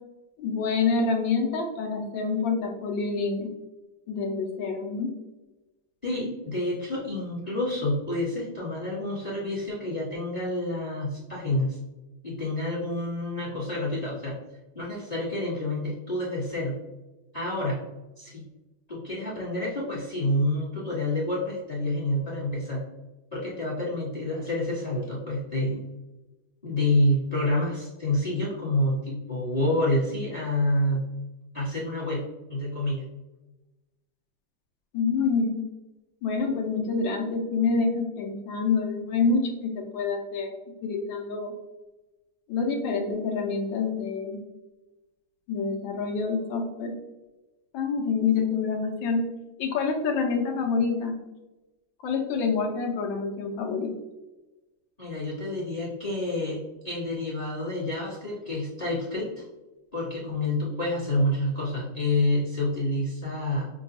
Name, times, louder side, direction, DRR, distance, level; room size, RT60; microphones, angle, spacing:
voice 1, 0.4-3.5 4.1-5.1 34.9-35.7 36.2-40.5 40.8-41.5 42.5-44.4 45.5-46.9 47.7-49.2 49.6-51.2 52.0-53.9, left 4 dB, 75° left, 2 dB, 1.2 m, -27 dB
voice 2, 6.0-11.8 12.2-14.3 14.7-16.8 17.3-17.8 18.2-18.4 18.9-22.8 23.3-25.8 26.6-31.0 31.5-33.1 55.0-59.4 59.9-63.7, left 1 dB, 25° left, -7 dB, 0.9 m, -28 dB
6.2 x 2.2 x 2.6 m, 1.1 s
omnidirectional pair, 2.4 m